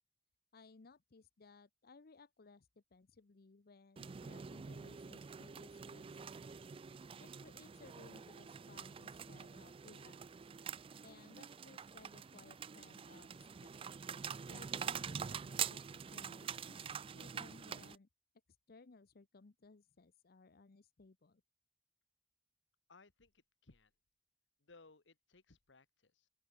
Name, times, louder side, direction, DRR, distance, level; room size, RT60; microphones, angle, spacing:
voice 1, 0.5-6.3 7.2-10.2 11.0-13.7 14.5-18.1 18.7-21.4, left 3 dB, 55° left, 0.7 m, -61 dB
sound 1, 4.0-18.0, right 7 dB, 30° right, 0.4 m, -46 dB
voice 2, 22.9-23.9 24.6-26.3, left 3 dB, 75° left, 1.5 m, -64 dB
open air
head